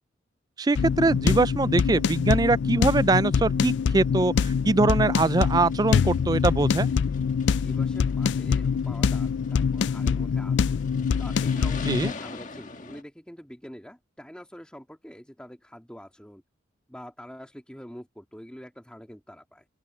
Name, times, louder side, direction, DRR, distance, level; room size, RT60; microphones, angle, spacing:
voice 1, 0.6-6.9 11.9-12.1, right 3 dB, 20° right, 0.3 m, -23 dB
sound 1, 0.7-12.1, left 6 dB, 65° left, 0.3 m, -24 dB
sound 2, 5.3-10.3 10.8-13.0, left 4 dB, 40° left, 1.7 m, -44 dB
voice 2, 7.6-10.8 11.2-16.4 16.9-19.7, equal, 5° left, 1.8 m, -45 dB
open air
head